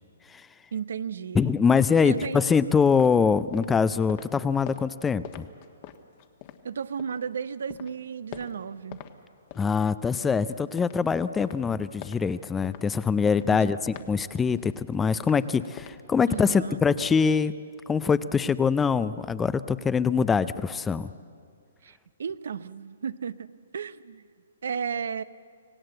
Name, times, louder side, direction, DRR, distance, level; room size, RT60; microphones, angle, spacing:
voice 1, 0.7-1.5 2.0-2.4 6.6-9.0 13.5-13.8 16.3-16.8 21.8-24.2 24.6-25.2, right 7 dB, 75° right, 15 dB, 0.8 m, -34 dB
voice 2, 1.3-5.5 9.6-17.6 17.9-21.1, left 5 dB, 10° left, 15 dB, 0.5 m, -24 dB
sound 1, 2.9-7.3 7.6-9.1 9.4-17.2, left 9 dB, 40° left, 1.4 m, -46 dB
26.5 x 17.5 x 7.8 m, 2.2 s
hypercardioid pair, 150°, 0 cm